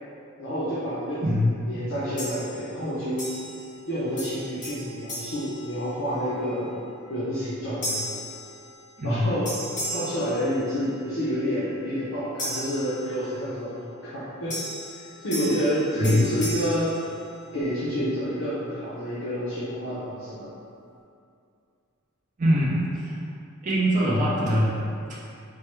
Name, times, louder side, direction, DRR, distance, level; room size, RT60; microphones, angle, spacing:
voice 1, 0.4-3.3 3.9-6.7 7.1-8.1 9.0-9.5 9.9-14.6 15.2-17.1 17.5-20.5, equal, 65° left, -12 dB, 0.8 m, -29 dB
sound 1, 2.2-2.8 3.2-3.9 4.2-6.3 6.8-7.1 7.8-9.1 9.4-11.1 12.4-13.6 14.5-17.7, equal, 35° left, 1.3 m, -36 dB
voice 2, 22.4-23.2 23.6-25.2, equal, 35° right, -6 dB, 0.5 m, -23 dB
4.5 x 2.2 x 3.1 m, 2.4 s
head